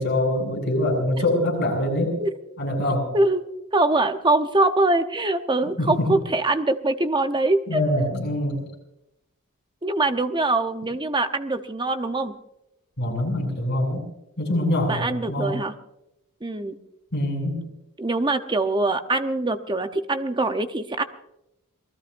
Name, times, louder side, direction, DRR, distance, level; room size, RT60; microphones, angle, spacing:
voice 1, 0.0-2.1 2.6-3.0 5.8-6.1 7.7-8.6 13.0-14.0 14.4-15.6 17.1-17.6, left 1 dB, 50° left, 0 dB, 7.1 m, -24 dB
voice 2, 3.7-7.8 9.8-12.3 14.9-15.7 16.4-16.8 18.0-21.0, right 2 dB, 20° right, 8 dB, 0.9 m, -23 dB
27.5 x 19.5 x 2.6 m, 0.85 s
head